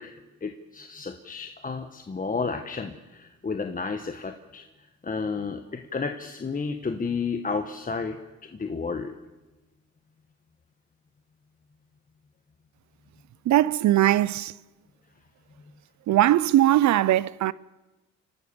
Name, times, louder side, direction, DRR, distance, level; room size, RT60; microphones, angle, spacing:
voice 1, 0.0-8.2 8.4-9.2, left 4 dB, 25° left, 1.2 m, -32 dB
voice 2, 13.5-14.5 16.1-17.5, right 13 dB, 70° right, 0.6 m, -20 dB
30.0 x 12.5 x 7.0 m
cardioid pair, 90°, 30 cm